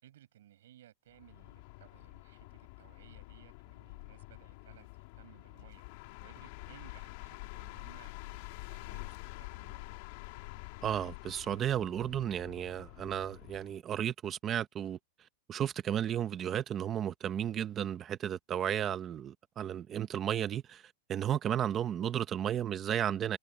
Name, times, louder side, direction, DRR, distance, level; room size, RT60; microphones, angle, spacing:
voice 1, 0.0-10.0, right 12 dB, 75° right, 6.8 m, -60 dB
sound 1, 1.1-13.8, left 25 dB, 45° left, 2.8 m, -48 dB
voice 2, 10.8-15.0 15.5-23.4, right 10 dB, 20° right, 0.9 m, -33 dB
supercardioid pair, 165°, 0 cm